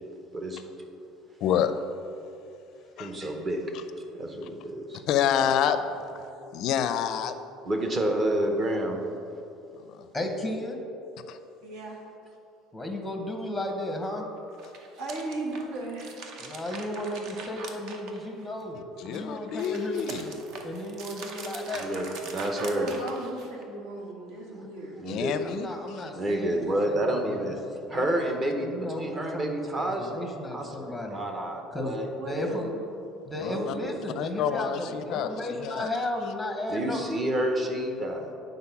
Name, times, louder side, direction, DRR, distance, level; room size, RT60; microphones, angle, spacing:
voice 1, 1.4-1.7 3.0-3.1 5.1-5.8 6.5-7.3 9.8-10.1 11.3-11.4 19.0-20.4 25.1-25.7 33.4-33.5 34.2-35.3 35.5-35.9, left 9 dB, 55° left, 10 dB, 0.4 m, -27 dB
voice 2, 3.0-3.8 4.1-5.0 7.6-9.0 21.7-22.9 24.0-24.6 24.9-25.5 26.1-27.6 27.9-30.1 30.5-32.5 33.5-34.0 36.7-38.3, right 1 dB, 25° right, 3 dB, 0.8 m, -29 dB
voice 3, 10.1-10.8 12.7-14.3 16.4-20.0 20.6-21.9 25.4-27.6 27.9-31.2 31.7-32.7 33.2-37.1, left 1 dB, 5° left, 3 dB, 0.8 m, -34 dB
voice 4, 11.6-12.0 15.0-16.4 22.7-25.0 32.2-32.9, right 2 dB, 70° right, -1 dB, 1.6 m, -37 dB
sound 1, 14.5-18.6 19.0-23.6, right 4 dB, 55° right, 0.8 m, -42 dB
8.8 x 4.0 x 5.8 m, 2.7 s
cardioid pair, 155°, 0 cm